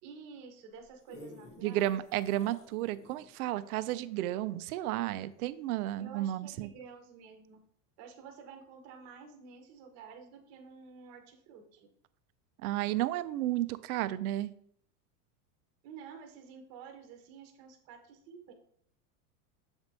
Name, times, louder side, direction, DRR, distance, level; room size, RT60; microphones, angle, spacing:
voice 1, 0.0-1.9 6.0-7.6 8.0-11.9 15.8-18.5, right 6 dB, 35° right, 4 dB, 0.9 m, -50 dB
sound 1, 0.7-5.4 5.9-6.0, left 3 dB, 15° left, 0.4 m, -54 dB
voice 2, 1.6-6.7 12.6-14.5, right 14 dB, 80° right, 14 dB, 0.6 m, -32 dB
7.1 x 3.5 x 4.1 m, 0.63 s
supercardioid pair, 170°, 43 cm